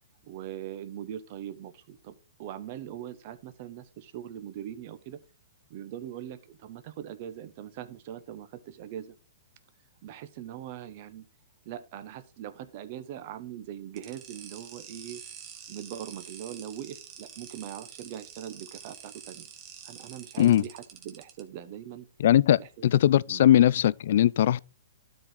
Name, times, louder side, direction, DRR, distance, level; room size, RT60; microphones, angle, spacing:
voice 1, 0.2-5.2 5.7-9.2 10.0-11.3 11.6-15.2 15.7-19.5 19.8-22.1 22.6-22.9 23.3-23.4, right 10 dB, 45° right, 1.2 m, -41 dB
sound 1, 14.0-21.4, right 8 dB, 25° right, 1.8 m, -47 dB
voice 2, 22.2-24.6, left 11 dB, 60° left, 0.3 m, -20 dB
12.5 x 4.7 x 3.9 m
hypercardioid pair, 145°, 0 cm